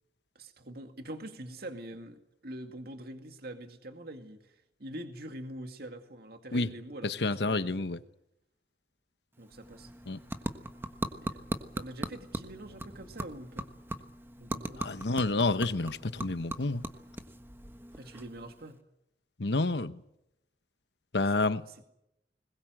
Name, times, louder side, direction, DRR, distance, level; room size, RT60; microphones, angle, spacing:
voice 1, 0.4-4.5 4.8-7.8 9.4-9.9 11.2-11.4 11.8-13.7 14.4-14.8 17.9-18.8, right 1 dB, 60° right, 2.1 m, -44 dB
voice 2, 7.0-8.0 10.1-10.2 14.8-16.8 19.4-20.0 21.1-21.8, left 3 dB, 70° left, 1.1 m, -29 dB
sound 1, 9.3-18.8, right 1 dB, 15° right, 1.3 m, -40 dB
21.0 x 21.0 x 7.9 m
head